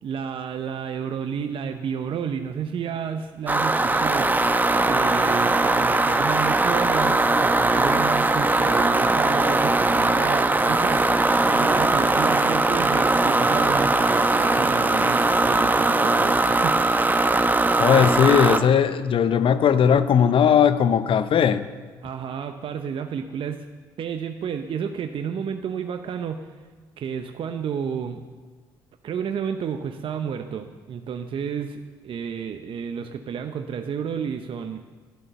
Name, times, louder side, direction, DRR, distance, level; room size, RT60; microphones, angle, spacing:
voice 1, 0.0-4.5 4.8-17.2 22.0-23.6 24.0-26.5 27.0-28.2 29.0-34.8, right 7 dB, 55° right, 7 dB, 0.8 m, -31 dB
sound 1, 3.5-18.6, right 2 dB, 15° right, 1.0 m, -20 dB
voice 2, 17.8-21.6, left 8 dB, 55° left, 13 dB, 0.8 m, -18 dB
12.5 x 11.5 x 6.9 m, 1.5 s
hypercardioid pair, 50°, 11 cm